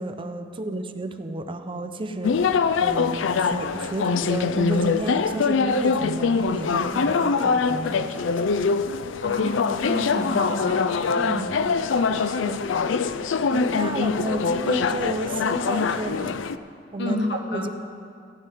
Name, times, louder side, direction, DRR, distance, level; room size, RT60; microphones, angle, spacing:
voice 1, 0.0-8.4 11.2-11.6 12.2-12.6 13.5-16.4 16.9-17.2 17.5-17.7, right 2 dB, 30° right, 8 dB, 0.6 m, -32 dB
sound 1, 2.2-16.6, left 5 dB, 80° left, 0.4 m, -23 dB
voice 2, 9.2-10.8 11.1-11.3 14.0-14.1 17.0-17.7, left 1 dB, 65° left, 4 dB, 1.2 m, -28 dB
15.5 x 5.4 x 9.1 m, 2.4 s
head